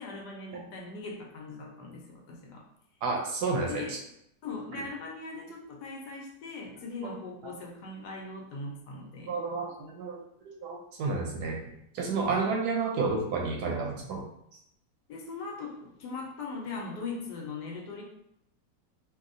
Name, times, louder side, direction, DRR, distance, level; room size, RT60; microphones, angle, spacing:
voice 1, 0.0-2.6 3.6-4.0 4.4-9.4 12.3-12.5 15.1-18.0, left 3 dB, 75° left, -1 dB, 1.2 m, -40 dB
voice 2, 3.0-4.0 9.3-11.6 11.9-14.2, right 4 dB, 75° right, 0 dB, 1.1 m, -31 dB
3.0 x 2.7 x 2.5 m, 0.76 s
omnidirectional pair, 1.8 m